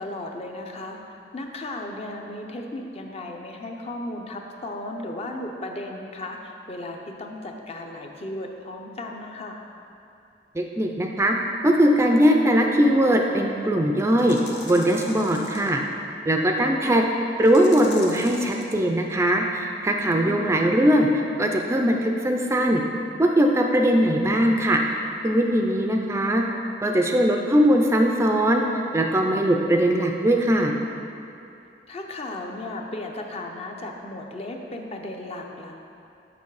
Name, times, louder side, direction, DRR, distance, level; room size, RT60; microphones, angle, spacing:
voice 1, 0.0-9.6 20.0-20.6 31.9-35.8, left 1 dB, 35° left, 2 dB, 0.6 m, -35 dB
voice 2, 10.5-11.3 11.6-14.4 14.6-15.8 16.3-17.0 17.4-22.8 23.2-24.8 25.2-26.4 26.8-28.6 28.9-30.7, equal, 15° right, 2 dB, 0.4 m, -20 dB
sound 1, 12.8-12.9 14.1-15.7 17.4-18.7, left 3 dB, 70° left, 1.0 m, -40 dB
7.0 x 5.9 x 4.7 m, 2.6 s
head